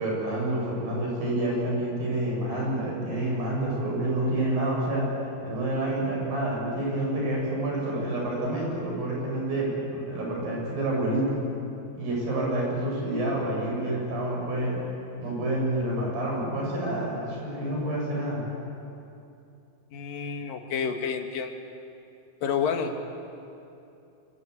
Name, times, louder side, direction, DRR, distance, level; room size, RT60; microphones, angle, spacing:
voice 1, 0.0-5.1 5.4-11.4 11.9-14.8 15.2-18.5, right 1 dB, 75° right, -2 dB, 9.2 m, -28 dB
voice 2, 19.9-21.5 22.4-22.9, left 6 dB, 75° left, 4 dB, 3.4 m, -29 dB
26.0 x 25.0 x 8.3 m, 2.7 s
omnidirectional pair, 4.1 m